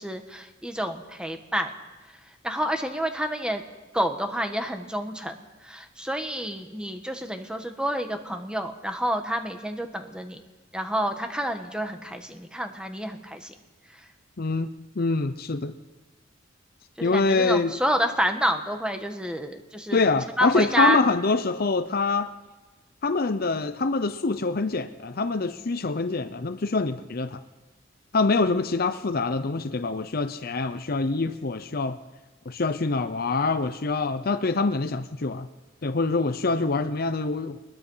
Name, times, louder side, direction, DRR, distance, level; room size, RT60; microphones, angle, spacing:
voice 1, 0.0-1.7 2.4-3.6 3.9-10.4 10.7-13.5 17.0-20.0 20.4-21.0, equal, 5° right, 6 dB, 1.5 m, -28 dB
voice 2, 14.4-14.7 15.0-15.7 17.0-17.8 19.9-22.3 23.0-27.4 28.1-32.0 32.5-35.5 35.8-37.6, left 3 dB, 50° left, 10 dB, 0.7 m, -25 dB
22.5 x 21.0 x 5.7 m, 1.2 s
head